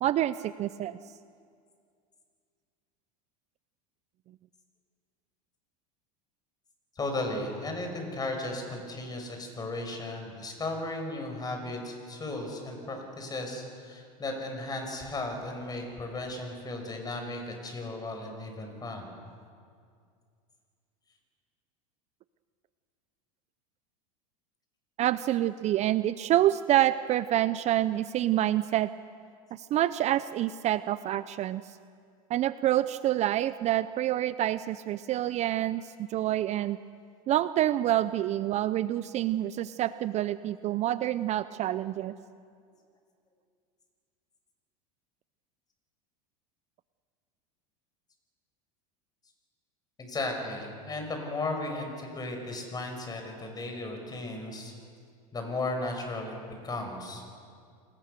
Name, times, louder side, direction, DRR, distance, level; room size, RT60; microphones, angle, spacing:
voice 1, 0.0-1.0 25.0-28.9 29.5-31.6 32.3-36.8 37.3-42.1, right 13 dB, 40° right, 14 dB, 0.6 m, -27 dB
voice 2, 7.0-19.1 50.0-54.7 55.3-56.3 56.6-57.2, left 2 dB, 20° left, 4 dB, 6.2 m, -35 dB
28.5 x 20.5 x 6.9 m, 2.2 s
supercardioid pair, 110°, 18 cm